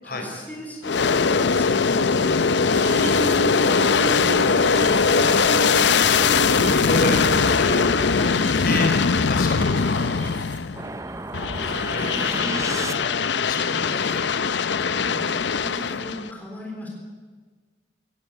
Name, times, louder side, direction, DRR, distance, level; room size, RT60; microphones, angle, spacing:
voice 1, 0.0-2.4 2.8-4.6 9.9-10.1 12.0-12.6 12.8-13.0 13.6-13.9 14.9-16.9, equal, 10° left, -1 dB, 3.5 m, -37 dB
Aircraft, 0.8-10.9 11.3-16.3, left 5 dB, 65° left, 0.6 m, -21 dB
sound 1, 2.7-11.0 11.6-12.4 13.6-13.9 15.7-15.8, right 2 dB, 85° right, 3.1 m, -33 dB
voice 2, 5.1-5.6 6.7-8.9 9.2-10.3 11.5-12.5 12.8-14.2, left 2 dB, 50° left, 3 dB, 4.1 m, -30 dB
sound 2, 10.7-13.4, right 3 dB, 15° right, 0.6 m, -34 dB
16.5 x 16.5 x 9.4 m, 1.5 s
head